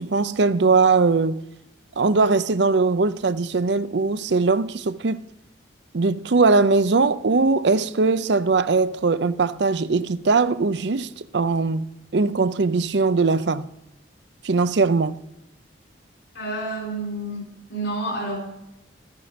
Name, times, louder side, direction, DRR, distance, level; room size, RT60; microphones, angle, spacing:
voice 1, 0.0-1.4 2.0-5.2 5.9-11.8 12.1-13.7 14.4-15.2, right 4 dB, 70° right, 0.6 m, -20 dB
voice 2, 16.3-18.4, right 1 dB, 75° left, 5.2 m, -29 dB
14.0 x 14.0 x 5.1 m
head